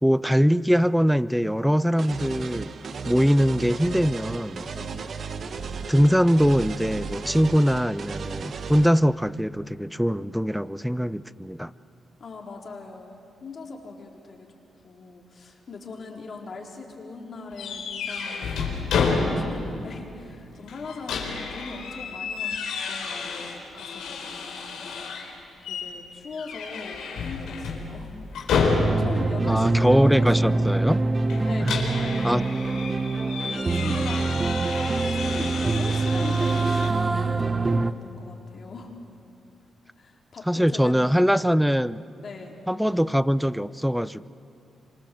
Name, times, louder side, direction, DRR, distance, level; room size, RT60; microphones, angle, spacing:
voice 1, 0.0-2.7 3.0-4.7 5.9-11.7 29.5-31.0 31.7-31.8 32.2-32.4 40.5-42.0 42.7-44.3, equal, ahead, 17 dB, 0.6 m, -22 dB
sound 1, 2.0-8.9, right 5 dB, 55° right, 1.2 m, -35 dB
voice 2, 4.7-5.0 12.2-14.5 14.8-22.6 22.9-25.4 25.7-28.2 28.7-30.7 31.4-32.5 33.7-34.5 35.1-38.9 40.0-41.5 42.2-42.6, left 4 dB, 50° left, 0 dB, 4.1 m, -40 dB
sound 2, 17.6-19.7 20.0-20.1 20.7-25.3 25.6-25.9 26.3-29.3 31.3-36.9, left 4 dB, 90° left, 4.0 m, -30 dB
sound 3, 28.7-37.9, right 3 dB, 30° right, 1.0 m, -24 dB
26.5 x 26.0 x 7.9 m, 2.8 s
cardioid pair, 80°, 0 cm